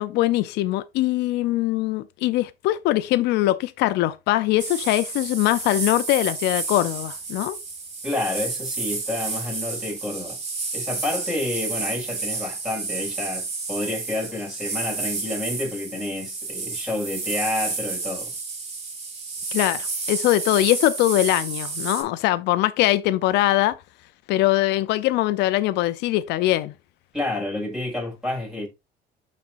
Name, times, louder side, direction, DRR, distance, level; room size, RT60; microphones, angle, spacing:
voice 1, 0.0-7.6 19.5-23.8 24.3-26.7, left 15 dB, 85° left, 0.5 m, -22 dB
sound 1, 4.6-22.0, right 4 dB, 40° right, 2.9 m, -31 dB
voice 2, 8.0-10.4 10.7-18.3 27.1-28.7, left 2 dB, ahead, 5.2 m, -29 dB
12.5 x 4.2 x 2.5 m
cardioid pair, 110°, 17 cm